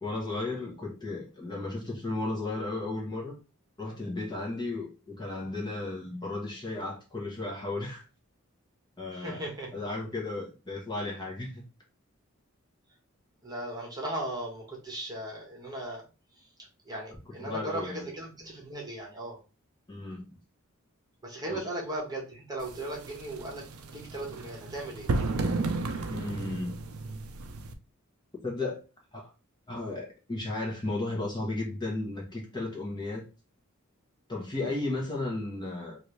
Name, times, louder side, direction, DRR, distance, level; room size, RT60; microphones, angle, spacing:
voice 1, 0.0-3.4 3.8-8.0 9.0-9.4 9.7-11.6 17.4-18.1 19.9-20.3 21.5-21.6 26.1-26.8 28.4-28.8 29.1-29.3 29.7-33.2 34.3-36.0, left 2 dB, 20° left, 0.9 m, -34 dB
voice 2, 9.1-9.8 13.4-16.0 16.4-16.5 16.8-19.4 21.2-25.1, right 1 dB, 20° right, 1.1 m, -37 dB
sound 1, 22.6-27.7, right 3 dB, 75° right, 0.5 m, -33 dB
3.2 x 2.6 x 3.1 m
head